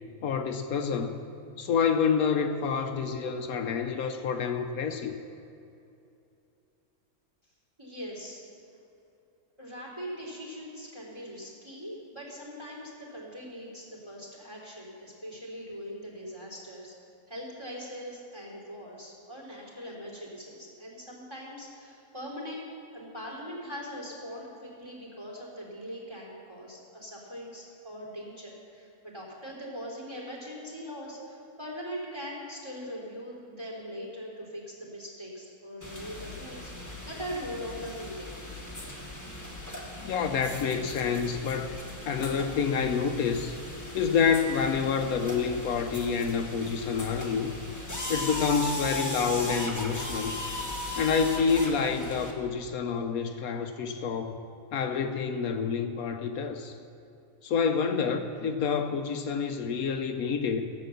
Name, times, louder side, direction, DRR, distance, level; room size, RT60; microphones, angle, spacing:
voice 1, 0.2-1.2 1.6-5.1 40.0-41.7 42.1-43.6 43.9-47.5 48.1-50.3 51.0-54.4 54.7-56.7 57.4-60.7, left 6 dB, 75° left, 6 dB, 1.2 m, -28 dB
voice 2, 7.8-8.4 9.6-16.9 17.3-22.6 22.9-38.3, equal, 20° right, -3 dB, 3.3 m, -41 dB
sound 1, 35.8-52.3, left 1 dB, 15° left, 1.4 m, -38 dB
15.0 x 8.3 x 6.9 m, 2.7 s
omnidirectional pair, 1.5 m